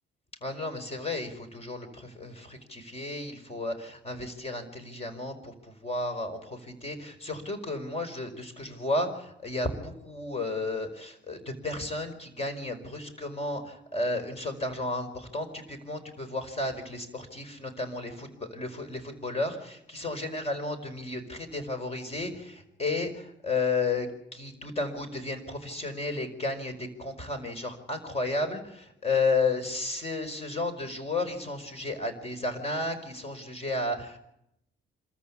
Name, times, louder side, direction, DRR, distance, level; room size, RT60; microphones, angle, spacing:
voice 1, 0.4-5.5 5.8-34.2, left 3 dB, 30° left, 8 dB, 5.1 m, -33 dB
26.0 x 14.0 x 8.6 m, 0.79 s
cardioid pair, 90°, 20 cm